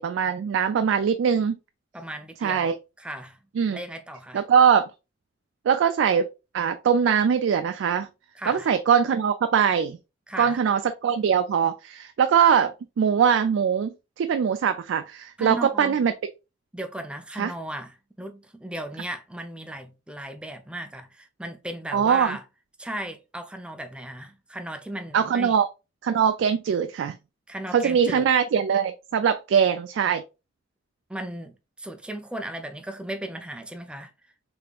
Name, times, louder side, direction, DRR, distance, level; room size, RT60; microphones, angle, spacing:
voice 1, 0.0-1.6 2.4-2.8 3.6-3.8 4.3-4.8 5.7-6.3 6.5-8.1 8.5-10.0 10.4-16.1 17.4-17.5 21.9-22.4 25.1-25.7 26.0-27.2 27.7-30.2, right 7 dB, 80° right, 0.3 m, -22 dB
voice 2, 1.9-3.4 3.7-4.4 8.3-8.7 10.3-10.6 15.4-16.0 16.7-22.4 22.8-25.6 27.5-28.3 31.1-34.1, right 1 dB, 5° right, 0.4 m, -36 dB
3.4 x 3.4 x 2.4 m
head